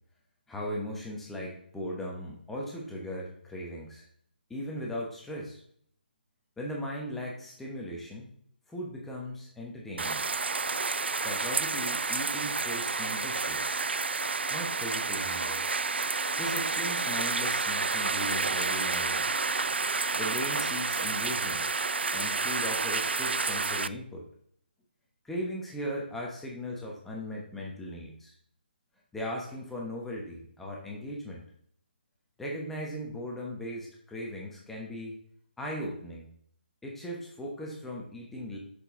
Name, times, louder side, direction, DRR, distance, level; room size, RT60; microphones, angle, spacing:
voice 1, 0.5-4.0 4.5-5.6 6.6-8.3 8.7-10.3 11.2-13.8 14.5-15.6 16.4-19.4 20.2-21.7 22.1-24.3 25.2-28.3 29.1-31.4 32.4-35.2 35.6-36.3 36.8-38.6, equal, 5° left, -3 dB, 1.1 m, -38 dB
sound 1, 10.0-23.9, right 4 dB, 80° right, 0.4 m, -30 dB
6.3 x 5.7 x 3.7 m, 0.63 s
figure-of-eight pair, 155°, 6 cm